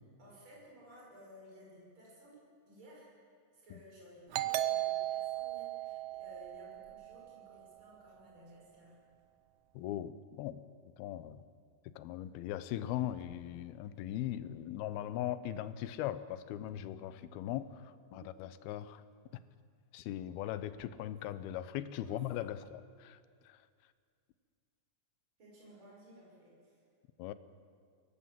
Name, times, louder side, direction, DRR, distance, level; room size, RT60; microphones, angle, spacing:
voice 1, 0.2-3.1 3.5-8.9 18.0-18.3 22.0-22.2 25.4-26.8, equal, 30° right, -4 dB, 6.8 m, -56 dB
Doorbell, 4.3-7.7, right 14 dB, 80° right, 1.7 m, -36 dB
voice 2, 9.7-10.6 11.0-11.4 11.8-19.0 19.9-23.2 23.4-23.6 27.2-27.3, left 12 dB, 85° left, 14 dB, 2.7 m, -39 dB
23.0 x 18.0 x 7.6 m, 2.2 s
omnidirectional pair, 4.3 m